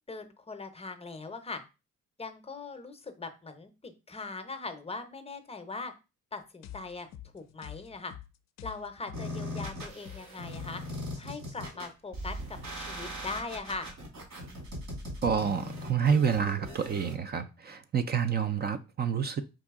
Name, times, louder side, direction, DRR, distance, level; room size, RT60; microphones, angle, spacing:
voice 1, 0.1-1.6 2.2-5.9 6.3-7.1 7.3-8.1 8.6-13.9, left 3 dB, 20° left, 0.7 m, -40 dB
sound 1, 6.6-11.4, left 12 dB, 60° left, 0.5 m, -47 dB
sound 2, 9.1-17.1, equal, 60° right, 2.1 m, -40 dB
voice 2, 15.2-19.4, right 7 dB, 35° right, 0.4 m, -28 dB
4.8 x 2.7 x 3.5 m
cardioid pair, 90°, 30 cm